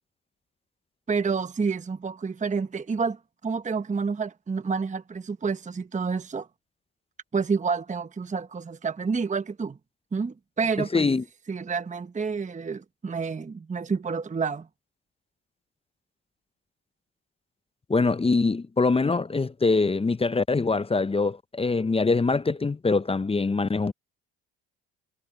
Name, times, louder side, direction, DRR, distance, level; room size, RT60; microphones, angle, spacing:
voice 1, 1.1-3.2 3.4-6.5 7.3-9.8 10.1-11.1 11.5-14.7, right 5 dB, 20° right, 1.0 m, -29 dB
voice 2, 10.8-11.2 17.9-23.9, left 3 dB, 15° left, 0.6 m, -24 dB
supercardioid pair, 70°, 36 cm